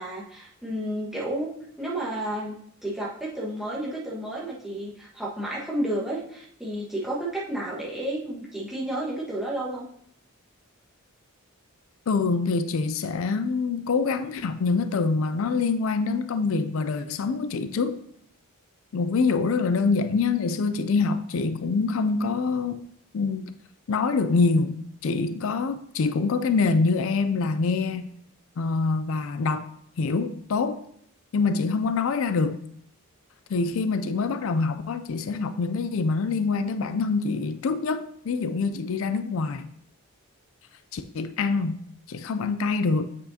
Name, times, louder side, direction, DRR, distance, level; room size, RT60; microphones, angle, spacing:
voice 1, 0.0-1.5 1.8-2.6 2.8-9.9 19.7-19.9, right 1 dB, ahead, 1.4 m, -31 dB
voice 2, 12.1-18.0 18.9-22.8 23.1-23.5 23.9-24.7 25.0-28.1 28.6-29.7 30.0-30.8 31.3-32.6 33.5-39.7 40.9-41.8 42.1-43.1, left 4 dB, 60° left, 0.4 m, -25 dB
7.8 x 6.4 x 2.8 m
head